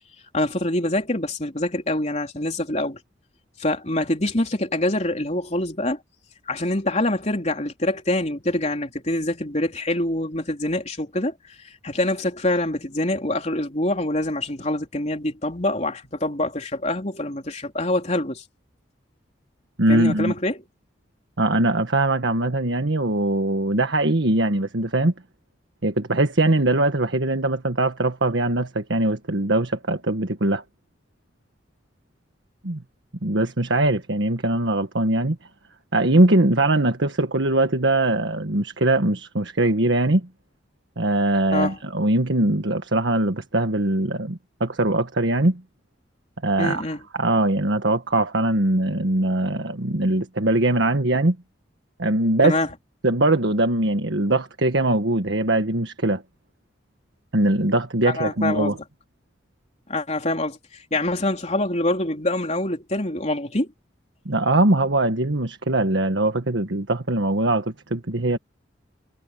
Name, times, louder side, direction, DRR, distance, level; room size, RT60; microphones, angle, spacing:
voice 1, 0.3-3.0 3.6-6.0 6.5-11.3 11.8-18.4 19.9-20.6 41.5-41.8 46.6-47.0 52.4-52.7 58.1-58.8 59.9-63.7, left 1 dB, 35° left, 3.7 m, -25 dB
voice 2, 19.8-20.3 21.4-25.1 25.8-30.6 32.6-32.8 33.2-35.4 35.9-40.3 41.0-45.6 46.4-46.8 47.1-51.4 52.0-52.6 53.0-56.2 57.3-58.8 64.2-68.4, right 2 dB, 80° right, 1.5 m, -21 dB
head